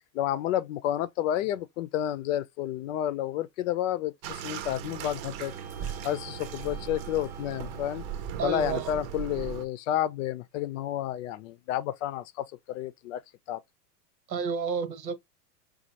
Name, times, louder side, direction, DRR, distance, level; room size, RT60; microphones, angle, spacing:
voice 1, 0.1-5.5 5.8-8.0 8.4-13.2 13.5-13.6, left 12 dB, 50° left, 0.6 m, -30 dB
Bathtub (filling or washing), 4.2-9.6, right 9 dB, 45° right, 0.8 m, -38 dB
sound 1, 4.3-8.6, equal, ahead, 0.3 m, -52 dB
voice 2, 8.4-8.9 14.3-15.2, right 6 dB, 90° right, 1.3 m, -31 dB
5.1 x 2.4 x 2.8 m
hypercardioid pair, 125°, 50 cm